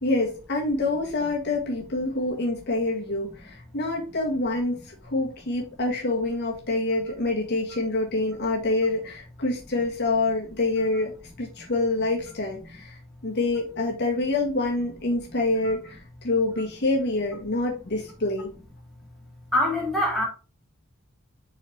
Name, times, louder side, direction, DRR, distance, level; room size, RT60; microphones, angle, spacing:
voice 1, 0.0-18.5, left 2 dB, 55° left, 1.5 m, -26 dB
voice 2, 19.5-20.2, left 1 dB, ahead, 2.8 m, -24 dB
7.0 x 4.3 x 3.2 m
head